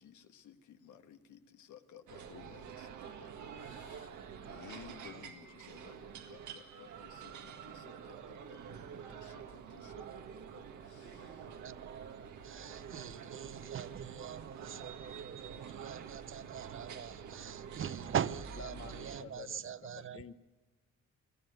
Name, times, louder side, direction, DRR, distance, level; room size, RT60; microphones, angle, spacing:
voice 1, 0.0-4.1 4.4-11.5, left 8 dB, 75° left, 8 dB, 1.5 m, -57 dB
sound 1, 2.1-19.2, right 7 dB, 75° right, 1.8 m, -48 dB
voice 2, 8.2-9.0 10.3-10.9 11.2-11.3 11.6-20.2, right 8 dB, 45° right, 16 dB, 0.7 m, -42 dB
voice 3, 18.6-20.3, left 7 dB, 45° left, 12 dB, 1.1 m, -50 dB
21.5 x 14.0 x 9.2 m, 1.2 s
cardioid pair, 90°, 30 cm